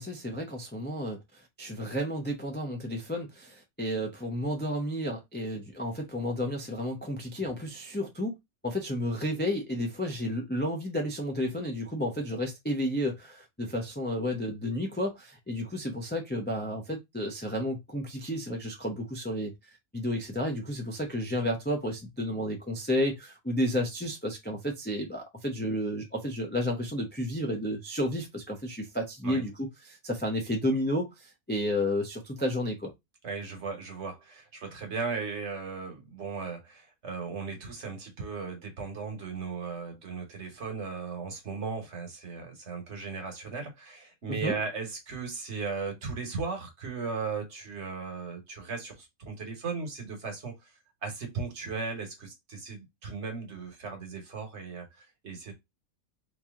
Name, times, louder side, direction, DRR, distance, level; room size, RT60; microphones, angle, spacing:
voice 1, 0.0-8.4 8.6-19.5 19.9-32.9 44.3-44.6, equal, 15° left, 0.4 m, -32 dB
voice 2, 33.2-50.7 51.0-55.5, right 4 dB, 50° right, 1.4 m, -37 dB
3.1 x 2.9 x 3.5 m
omnidirectional pair, 1.5 m